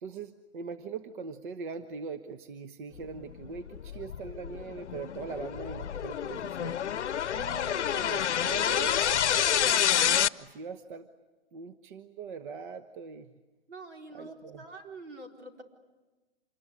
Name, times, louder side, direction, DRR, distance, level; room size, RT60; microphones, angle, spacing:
voice 1, 0.0-6.8 7.3-9.8 10.4-11.1 11.5-13.3 14.1-14.6, right 5 dB, 45° right, 10 dB, 1.2 m, -41 dB
sound 1, 3.3-10.3, left 9 dB, 75° left, 0.8 m, -28 dB
voice 2, 13.7-15.6, right 2 dB, 75° right, 3 dB, 4.6 m, -46 dB
27.0 x 20.5 x 9.8 m, 1.2 s
hypercardioid pair, 150°, 35 cm